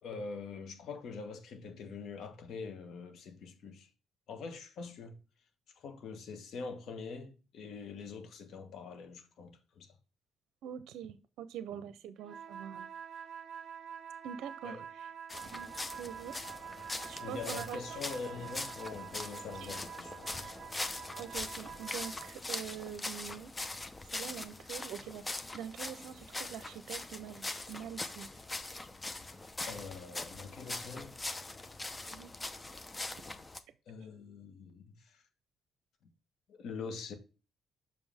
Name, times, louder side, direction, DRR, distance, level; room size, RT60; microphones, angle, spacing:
voice 1, 0.0-3.9 4.3-5.2 5.8-9.9 14.6-14.8 17.2-20.4 29.7-31.1 33.9-35.2 36.5-37.2, left 4 dB, 70° left, 1.4 m, -44 dB
voice 2, 10.6-12.9 14.2-15.1 15.4-15.7 16.0-16.3 17.0-18.0 19.6-19.7 21.2-23.5 24.1-28.3 32.1-32.3 34.0-34.1, right 9 dB, 85° right, 0.5 m, -44 dB
sound 1, 12.2-22.4, right 7 dB, 45° right, 0.8 m, -47 dB
sound 2, 15.3-33.6, left 2 dB, 20° left, 0.7 m, -42 dB
6.6 x 5.4 x 3.4 m
cardioid pair, 90°, 0 cm